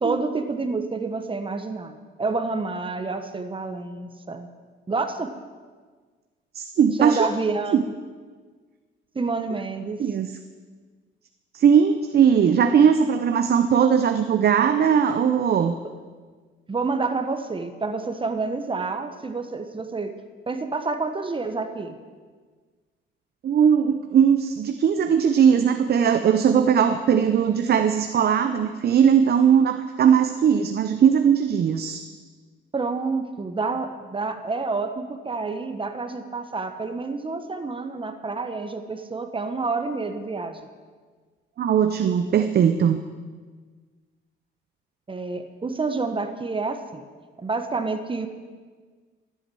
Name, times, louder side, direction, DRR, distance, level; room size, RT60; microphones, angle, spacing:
voice 1, 0.0-4.5 4.9-5.4 7.0-7.8 9.1-10.0 16.7-20.1 20.5-22.0 32.7-40.7 45.1-47.0 47.4-48.3, right 3 dB, 25° right, 7 dB, 1.2 m, -28 dB
voice 2, 6.5-7.3 7.7-7.8 10.0-10.3 11.5-15.8 23.4-32.0 41.6-43.0, right 7 dB, 55° right, 8 dB, 0.8 m, -19 dB
13.5 x 8.6 x 7.8 m, 1.5 s
cardioid pair, 90°, 20 cm